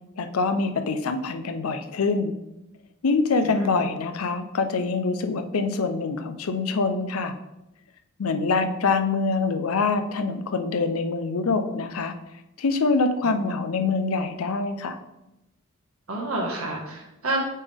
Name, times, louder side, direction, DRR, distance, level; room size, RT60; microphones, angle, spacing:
voice 1, 0.2-2.4 3.0-7.3 8.2-12.1 12.6-15.0, left 4 dB, 90° left, 8 dB, 0.6 m, -25 dB
voice 2, 3.4-3.8 13.2-13.6 16.1-17.4, right 2 dB, 85° right, -2 dB, 1.8 m, -30 dB
8.3 x 3.6 x 3.5 m, 0.92 s
head